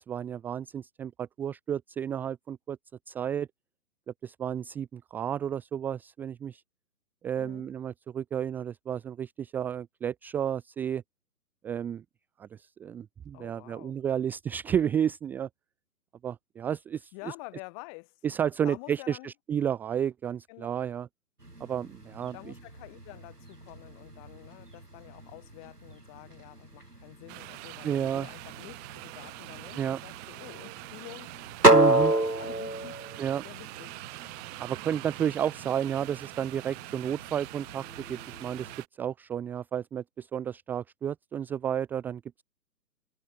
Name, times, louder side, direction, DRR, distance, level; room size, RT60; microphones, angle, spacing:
voice 1, 0.0-2.8 3.1-3.5 4.2-6.6 7.2-11.0 11.6-12.0 12.4-15.5 16.2-17.3 18.2-21.1 21.6-22.5 27.8-28.3 29.7-30.0 31.7-32.1 33.2-33.4 34.6-37.8 38.1-38.7 39.0-42.2, right 9 dB, 5° right, 0.9 m, -32 dB
voice 2, 7.3-7.7 13.3-14.0 17.1-18.1 18.6-19.3 20.5-20.7 22.3-31.3 31.6-33.0 33.4-34.0, left 34 dB, 20° left, 6.5 m, -48 dB
sound 1, 21.4-38.7, right 2 dB, 90° right, 3.5 m, -31 dB
sound 2, 27.3-38.9, right 32 dB, 20° right, 7.2 m, -44 dB
figure-of-eight pair, 135°, 46 cm